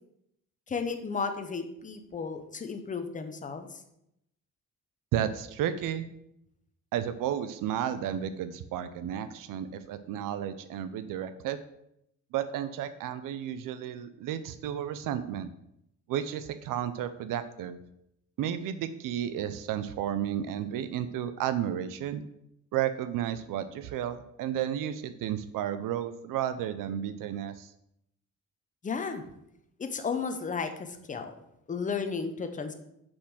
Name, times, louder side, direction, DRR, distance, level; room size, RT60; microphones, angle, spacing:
voice 1, 0.7-3.8 28.8-29.2 29.8-31.3 31.7-32.7, left 5 dB, 25° left, 7 dB, 0.8 m, -33 dB
voice 2, 5.1-6.1 6.9-11.6 12.3-15.5 16.1-17.8 18.4-22.2 22.7-27.7, right 10 dB, 85° right, 12 dB, 0.6 m, -32 dB
6.8 x 5.3 x 6.2 m, 0.79 s
cardioid pair, 150°, 31 cm